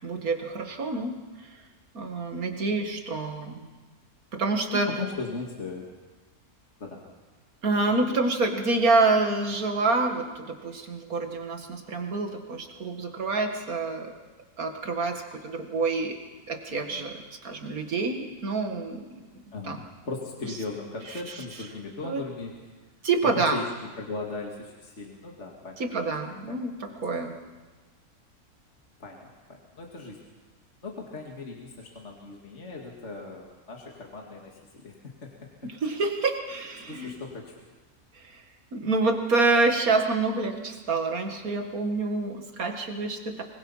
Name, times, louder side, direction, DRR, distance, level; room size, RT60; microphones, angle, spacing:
voice 1, 0.0-1.2 1.9-3.7 4.3-4.9 7.6-14.1 14.6-16.2 16.5-19.1 19.7-19.8 21.1-21.4 22.0-22.2 23.0-23.6 25.8-27.4 35.6-37.1 38.2-38.4 38.7-43.4, right 3 dB, 75° right, 4 dB, 2.4 m, -27 dB
voice 2, 4.7-5.9 6.8-7.0 7.7-7.8 16.7-17.0 19.5-22.5 23.3-25.8 26.5-26.6 29.0-30.2 30.8-35.3 36.9-37.5, left 3 dB, 50° left, -1 dB, 2.4 m, -38 dB
24.5 x 21.5 x 5.6 m, 1.2 s
omnidirectional pair, 1.6 m